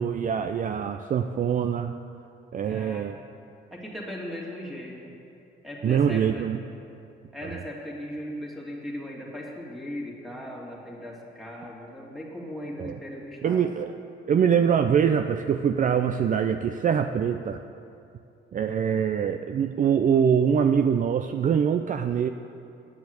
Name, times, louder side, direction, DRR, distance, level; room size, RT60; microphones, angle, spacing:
voice 1, 0.0-1.9 2.5-3.2 5.8-6.6 7.4-7.5 12.8-13.0 13.4-14.0 14.3-17.6 18.5-22.3, right 7 dB, 40° right, 7 dB, 0.4 m, -24 dB
voice 2, 2.6-3.1 3.7-5.0 5.6-6.5 7.3-13.7, equal, ahead, -3 dB, 2.4 m, -38 dB
9.6 x 7.1 x 7.9 m, 2.6 s
cardioid pair, 90°, 20 cm